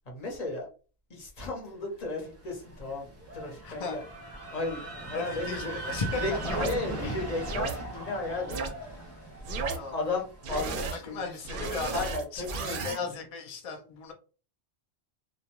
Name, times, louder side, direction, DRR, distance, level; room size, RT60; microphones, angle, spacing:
voice 1, 0.1-0.7 1.1-3.1 3.3-4.0 4.5-5.7 6.2-9.5 9.9-11.3 11.6-12.9, left 2 dB, 40° left, 0 dB, 0.8 m, -35 dB
sound 1, 2.0-11.8, right 2 dB, 20° right, 0.5 m, -40 dB
voice 2, 3.6-4.0 5.1-6.6 7.9-8.0 9.6-10.0 10.9-14.1, left 4 dB, 60° left, 3 dB, 0.4 m, -36 dB
sound 2, 6.4-6.7 7.4-7.7 8.5-8.7 9.4-9.8 10.4-11.0 11.4-13.0, right 4 dB, 60° right, 0.6 m, -33 dB
2.3 x 2.1 x 2.9 m, 0.36 s
omnidirectional pair, 1.1 m